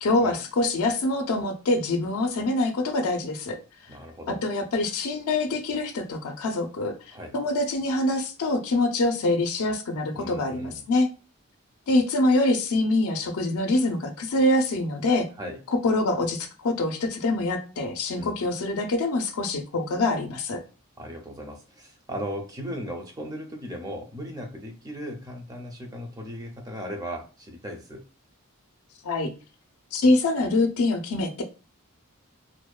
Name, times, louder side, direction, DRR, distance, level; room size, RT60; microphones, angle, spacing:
voice 1, 0.0-3.6 4.3-11.1 11.9-15.3 15.7-20.6 29.0-29.3 29.9-31.4, left 2 dB, 90° left, 5 dB, 0.4 m, -25 dB
voice 2, 3.9-4.4 7.1-7.4 10.1-10.8 15.4-15.6 18.1-18.4 21.0-28.0, equal, 15° right, 3 dB, 0.4 m, -37 dB
2.6 x 2.1 x 2.2 m, 0.33 s
head